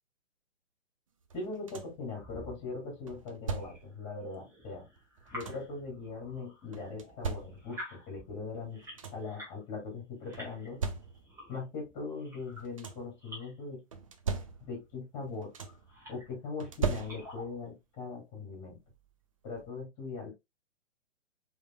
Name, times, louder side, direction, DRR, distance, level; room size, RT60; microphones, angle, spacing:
voice 1, 1.3-4.9 5.3-8.8 9.1-10.8 11.5-13.8 14.6-15.5 16.1-18.8 19.4-20.3, left 4 dB, 25° left, -1 dB, 2.8 m, -40 dB
sound 1, 1.3-2.1 3.1-4.0 5.0-5.8 6.7-7.9 8.5-8.6 8.8-9.4 10.3-11.5 12.4-13.2 13.9-15.0 15.2-16.0 16.6-17.6 18.9-19.0 19.5-19.7, right 5 dB, 30° right, 0.4 m, -39 dB
sound 2, 2.2-9.6 10.0-13.6 14.3-14.9 15.5-16.4 16.8-17.7, left 1 dB, 10° right, 1.7 m, -51 dB
5.0 x 3.6 x 2.4 m, 0.21 s
figure-of-eight pair, 125°, 37 cm